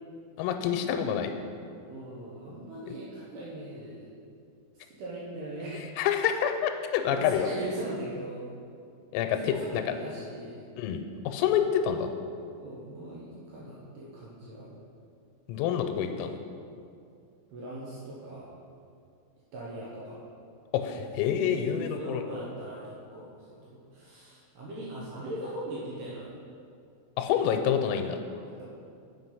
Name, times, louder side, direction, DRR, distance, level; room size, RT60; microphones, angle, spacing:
voice 1, 0.4-1.3 6.0-7.5 9.1-9.8 10.8-11.0 11.3-12.1 15.5-16.4 20.7-22.2 27.2-28.2, left 8 dB, 90° left, 6 dB, 3.3 m, -27 dB
voice 2, 1.9-4.0 4.8-5.8 7.1-8.5 9.5-10.6 12.6-14.8 17.5-18.5 19.5-20.2 21.9-26.3 28.3-28.6, right 1 dB, 70° right, -6 dB, 2.6 m, -40 dB
7.7 x 6.0 x 5.5 m, 2.5 s
omnidirectional pair, 5.9 m